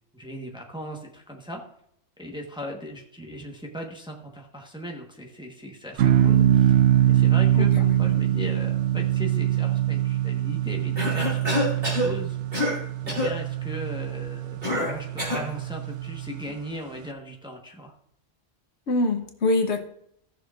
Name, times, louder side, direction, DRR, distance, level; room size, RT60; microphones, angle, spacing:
voice 1, 0.1-1.6 2.2-6.8 7.1-12.4 13.0-17.9, equal, 5° right, 0 dB, 1.1 m, -38 dB
sound 1, 6.0-16.5, right 11 dB, 75° right, 0.9 m, -23 dB
voice 2, 7.5-7.9 18.9-19.8, left 2 dB, 70° left, 5 dB, 1.2 m, -24 dB
Cough, 11.0-12.1 12.5-12.8 13.1-13.3 14.6-15.5, left 1 dB, 50° right, 3.2 m, -26 dB
17.0 x 6.2 x 2.5 m, 0.71 s
omnidirectional pair, 1.2 m